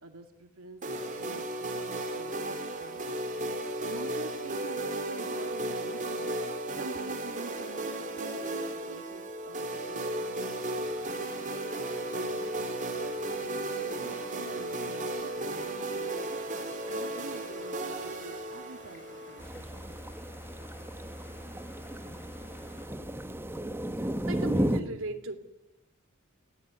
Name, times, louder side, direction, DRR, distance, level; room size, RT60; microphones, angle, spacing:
voice 1, 0.0-3.1 3.8-11.5 12.1-16.4 16.9-19.8, right 2 dB, 85° right, 4 dB, 2.5 m, -47 dB
sound 1, 0.8-19.4, right 1 dB, 35° right, 4.1 m, -35 dB
sound 2, 10.4-22.9, left 2 dB, 55° left, 6.7 m, -54 dB
sound 3, 19.4-24.8, right 1 dB, 10° right, 1.1 m, -34 dB
voice 2, 24.3-25.3, right 2 dB, 65° right, 5 dB, 3.1 m, -36 dB
28.5 x 17.0 x 9.8 m, 0.96 s
head